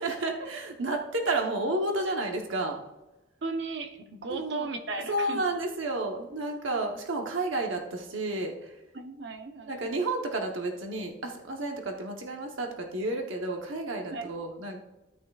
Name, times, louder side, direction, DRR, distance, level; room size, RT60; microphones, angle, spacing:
voice 1, 0.0-2.8 4.3-4.6 5.1-8.7 9.6-14.8, right 2 dB, 90° right, 2 dB, 1.0 m, -31 dB
voice 2, 3.4-5.4 8.9-9.9 14.1-14.3, right 3 dB, 60° right, 6 dB, 0.8 m, -36 dB
13.0 x 8.9 x 2.4 m, 1.0 s
head